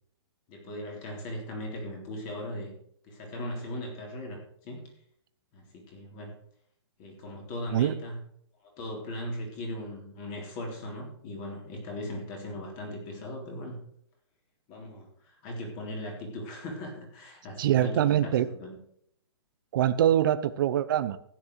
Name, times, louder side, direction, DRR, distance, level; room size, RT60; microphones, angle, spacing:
voice 1, 0.5-2.7 3.0-4.9 5.5-6.3 7.0-8.2 8.6-13.8 14.7-18.8, left 1 dB, 30° left, 1 dB, 3.7 m, -38 dB
voice 2, 17.6-18.5 19.7-21.2, right 11 dB, 45° right, 12 dB, 0.8 m, -24 dB
13.5 x 9.7 x 4.8 m, 0.68 s
hypercardioid pair, 160°, 15 cm